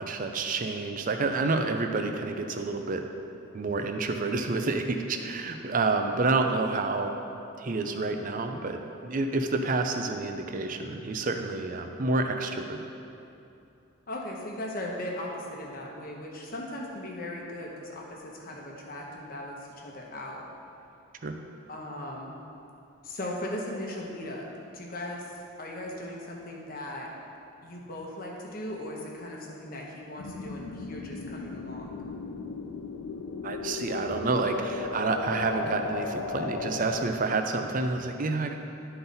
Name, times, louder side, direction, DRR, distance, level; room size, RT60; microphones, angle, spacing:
voice 1, 0.0-3.1 3.5-7.2 7.6-12.8 21.2-21.3 33.4-38.6, right 3 dB, 40° right, 5 dB, 0.4 m, -29 dB
voice 2, 14.1-20.5 21.7-22.3 23.0-24.5 24.7-25.3 25.6-27.1 27.6-32.0, left 1 dB, 40° left, -1 dB, 1.0 m, -38 dB
sound 1, 30.2-37.1, left 4 dB, 85° left, 0.5 m, -36 dB
11.5 x 3.9 x 4.0 m, 2.8 s
head